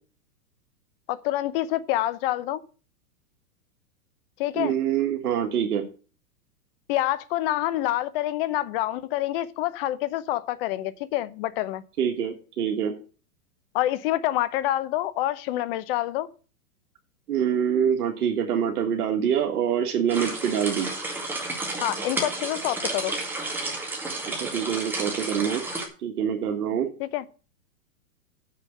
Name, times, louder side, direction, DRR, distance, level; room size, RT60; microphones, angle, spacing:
voice 1, 1.1-2.6 4.4-4.7 6.9-11.8 13.7-16.3 21.8-23.1 27.0-27.2, left 14 dB, 40° left, 0.8 m, -27 dB
voice 2, 4.6-5.8 12.0-12.9 17.3-20.9 24.4-25.6 26.0-26.9, right 8 dB, 75° right, 1.7 m, -25 dB
sound 1, 20.1-25.9, right 2 dB, 5° right, 2.0 m, -31 dB
7.1 x 6.6 x 7.8 m
hypercardioid pair, 145°, 46 cm